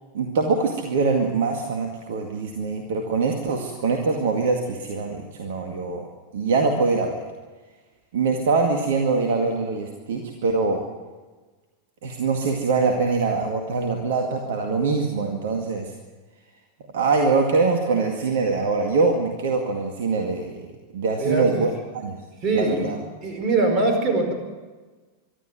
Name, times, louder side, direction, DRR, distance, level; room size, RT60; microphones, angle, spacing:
voice 1, 0.1-6.1 6.3-7.2 8.1-10.8 12.0-15.9 16.9-22.2 22.5-23.0, right 4 dB, 60° right, 3 dB, 2.1 m, -23 dB
voice 2, 21.2-21.7 22.4-22.9 23.2-24.3, right 3 dB, 35° right, 5 dB, 4.9 m, -22 dB
24.5 x 12.5 x 9.3 m, 1.3 s
figure-of-eight pair, 90°, 0 cm